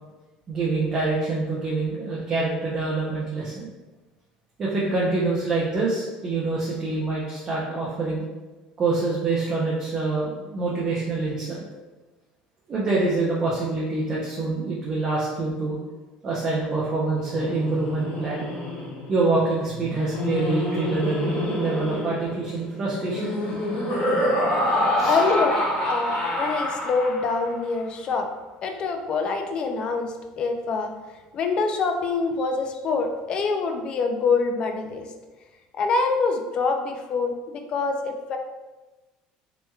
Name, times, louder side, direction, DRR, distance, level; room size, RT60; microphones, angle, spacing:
voice 1, 0.5-3.7 4.6-8.2 8.8-11.7 12.7-15.8 16.2-18.5 19.1-23.4 25.0-25.2, right 3 dB, 25° right, -5 dB, 0.5 m, -26 dB
Laughter, 17.1-27.5, left 1 dB, 75° left, 1.2 m, -27 dB
voice 2, 25.0-28.3 28.6-30.9 31.3-35.1 35.7-38.4, left 4 dB, 35° left, 5 dB, 0.3 m, -25 dB
3.2 x 2.9 x 2.2 m, 1.2 s
cardioid pair, 165°, 3 cm